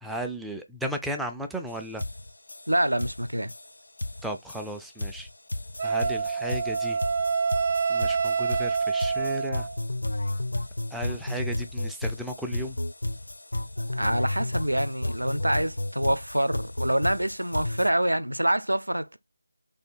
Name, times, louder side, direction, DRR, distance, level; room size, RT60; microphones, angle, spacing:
voice 1, 0.0-2.0 4.2-5.3 5.8-7.0 7.9-9.7 10.9-12.8, equal, ahead, 0.4 m, -35 dB
sound 1, 1.7-1.8 2.0-17.9, left 1 dB, 65° left, 0.5 m, -33 dB
voice 2, 2.7-3.5 13.8-19.2, right 1 dB, 85° right, 0.7 m, -26 dB
Wind instrument woodwind instrument, 5.8-9.8, right 5 dB, 40° right, 0.8 m, -27 dB
3.5 x 2.6 x 4.3 m
figure-of-eight pair, 160°, 0 cm